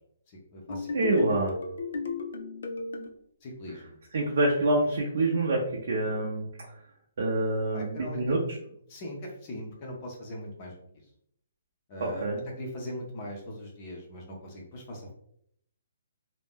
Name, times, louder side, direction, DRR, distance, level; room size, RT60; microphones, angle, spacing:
voice 1, 0.3-1.2 3.4-4.0 7.7-8.2 8.9-10.7 11.9-12.3 12.6-15.1, left 1 dB, 25° left, 0 dB, 0.5 m, -40 dB
sound 1, 0.7-3.1, left 4 dB, 75° left, 0.5 m, -34 dB
voice 2, 0.9-1.5 4.1-5.6 5.9-6.5 7.2-8.4 12.0-12.4, right 2 dB, 55° right, -2 dB, 0.6 m, -26 dB
2.5 x 2.1 x 3.5 m, 0.69 s
hypercardioid pair, 175°, 0 cm